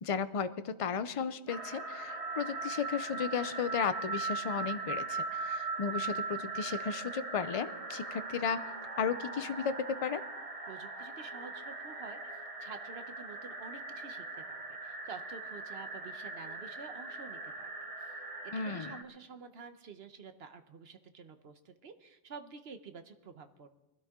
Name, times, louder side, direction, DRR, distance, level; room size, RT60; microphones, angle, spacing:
voice 1, 0.0-8.6 9.0-10.2 18.5-19.0, left 6 dB, 40° left, 13 dB, 0.5 m, -34 dB
sound 1, 1.5-19.0, right 3 dB, 35° right, 1.1 m, -40 dB
voice 2, 10.7-18.2 18.6-23.7, right 5 dB, 65° right, 9 dB, 1.2 m, -49 dB
23.5 x 12.5 x 3.7 m, 1.0 s
omnidirectional pair, 1.1 m